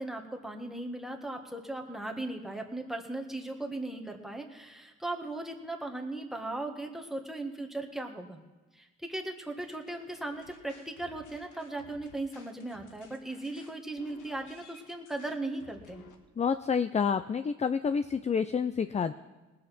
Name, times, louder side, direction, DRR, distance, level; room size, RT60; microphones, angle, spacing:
voice 1, 0.0-8.4 8.7-16.1, right 2 dB, ahead, 1 dB, 1.6 m, -38 dB
sound 1, 9.6-16.2, left 4 dB, 80° left, 1.6 m, -56 dB
voice 2, 16.4-19.1, left 6 dB, 25° left, 11 dB, 0.4 m, -28 dB
19.0 x 7.3 x 6.0 m, 1.2 s
cardioid pair, 90°, 30 cm